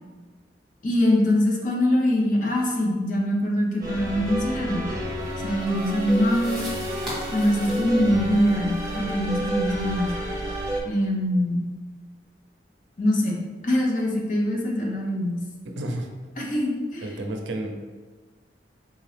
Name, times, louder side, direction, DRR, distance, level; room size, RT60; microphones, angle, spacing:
voice 1, 0.8-4.8 5.4-6.6 7.3-10.1 10.8-11.7 13.0-15.4 16.4-17.1, left 1 dB, 45° left, -1 dB, 0.6 m, -23 dB
sound 1, 3.8-10.8, right 1 dB, 20° right, 0.7 m, -30 dB
sound 2, 5.2-10.1, equal, ahead, 1.3 m, -42 dB
voice 2, 15.6-16.1 17.0-17.7, right 1 dB, 85° right, 2 dB, 0.5 m, -31 dB
3.6 x 2.8 x 3.2 m, 1.4 s
head